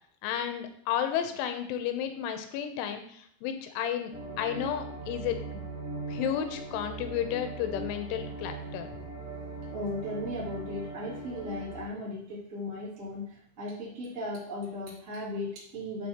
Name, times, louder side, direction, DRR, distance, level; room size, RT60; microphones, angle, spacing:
voice 1, 0.2-4.1 4.4-5.6 6.1-8.9, left 9 dB, 90° left, 7 dB, 3.2 m, -32 dB
sound 1, 4.1-11.8, right 3 dB, 35° left, 0.9 m, -40 dB
voice 2, 9.7-16.1, left 1 dB, 25° right, -7 dB, 1.8 m, -37 dB
8.9 x 7.0 x 2.8 m, 0.66 s
omnidirectional pair, 5.4 m